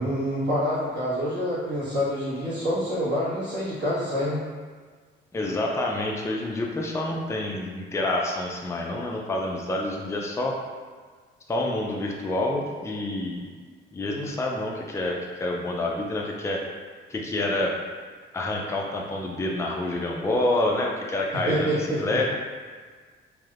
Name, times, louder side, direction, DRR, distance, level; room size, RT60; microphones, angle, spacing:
voice 1, 0.0-4.4 21.5-22.2, equal, 65° right, -10 dB, 1.3 m, -27 dB
voice 2, 5.3-10.6 11.5-13.5 13.9-16.6 17.1-17.7 18.3-22.2, left 1 dB, 15° left, -1 dB, 0.4 m, -28 dB
3.3 x 2.6 x 2.5 m, 1.6 s
cardioid pair, 90°, 20 cm